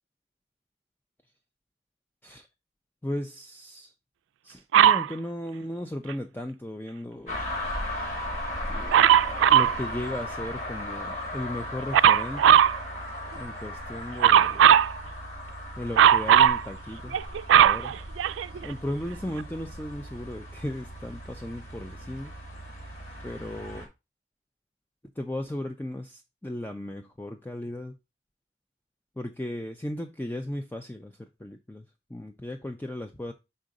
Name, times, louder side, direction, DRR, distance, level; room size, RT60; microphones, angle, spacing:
voice 1, 3.0-3.9 4.4-7.5 8.7-12.6 13.4-14.8 15.8-17.2 17.6-17.9 18.6-22.3 23.2-23.9 25.2-28.0 29.2-33.3, left 1 dB, 10° left, 0.4 m, -36 dB
Dog, 4.7-5.1 8.9-9.8 11.9-12.8 14.2-14.9 16.0-16.6 17.1-18.7 19.4-19.5, right 10 dB, 90° right, 0.3 m, -18 dB
sound 1, 7.3-23.9, left 1 dB, 40° left, 2.4 m, -37 dB
5.5 x 3.8 x 5.1 m
head